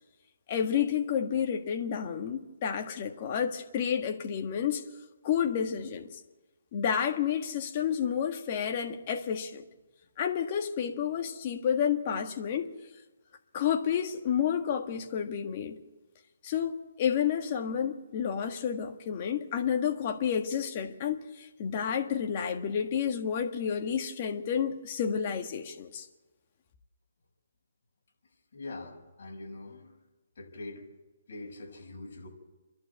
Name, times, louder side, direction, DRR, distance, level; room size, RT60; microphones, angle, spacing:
voice 1, 0.5-4.8 5.2-6.2 6.7-9.6 10.2-12.7 13.5-15.8 16.4-26.0, left 8 dB, 30° left, 1.6 m, -30 dB
voice 2, 28.5-30.0 30.4-30.9 31.3-32.3, left 2 dB, 50° left, 6.0 m, -43 dB
28.5 x 11.5 x 8.2 m
hypercardioid pair, 170°, 0 cm